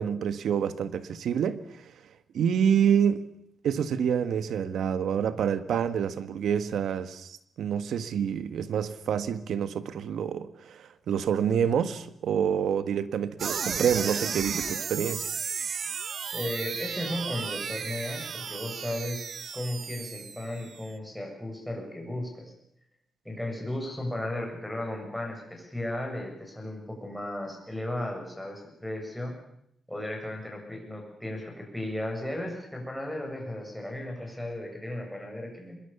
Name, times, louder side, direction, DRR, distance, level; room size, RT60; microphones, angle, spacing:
voice 1, 0.0-1.8 2.3-3.2 3.6-15.3, right 8 dB, 80° right, 1.5 m, -27 dB
sound 1, 13.4-20.9, right 6 dB, 50° right, 0.9 m, -34 dB
voice 2, 16.3-19.3 19.5-22.5 23.2-29.4 29.9-35.8, left 1 dB, 5° left, 7.5 m, -35 dB
25.0 x 21.5 x 7.2 m
wide cardioid pair, 130°, 0 cm